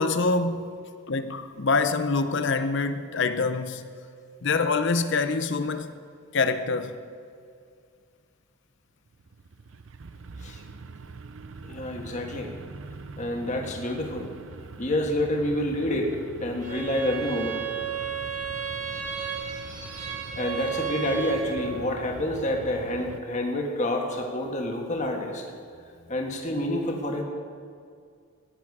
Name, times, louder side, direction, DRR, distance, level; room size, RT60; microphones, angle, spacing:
voice 1, 0.0-3.9 4.4-5.9 6.3-7.0, left 4 dB, 55° left, 0.7 m, -25 dB
sound 1, 9.1-23.2, right 4 dB, 60° right, 0.6 m, -43 dB
voice 2, 11.6-12.5 13.2-14.3 14.8-17.6 20.3-25.4 26.1-27.2, left 1 dB, 35° left, 1.5 m, -28 dB
Bowed string instrument, 16.6-21.8, right 7 dB, 30° right, 2.1 m, -33 dB
16.0 x 10.0 x 4.9 m
head